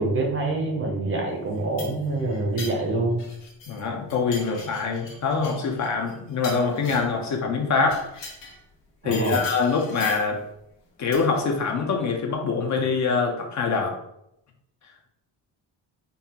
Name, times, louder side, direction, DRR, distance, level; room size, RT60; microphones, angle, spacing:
voice 1, 0.0-3.2 9.0-9.4, right 2 dB, 30° right, 1 dB, 0.6 m, -26 dB
sound 1, 1.5-3.8 4.1-7.2 7.8-8.6 9.1-10.4 11.1-11.5, left 3 dB, 75° left, 1.4 m, -40 dB
voice 2, 3.7-8.0 9.0-10.4 11.0-14.0, left 4 dB, 40° left, 2 dB, 0.5 m, -24 dB
5.3 x 2.4 x 2.8 m, 0.81 s
cardioid pair, 175°, 44 cm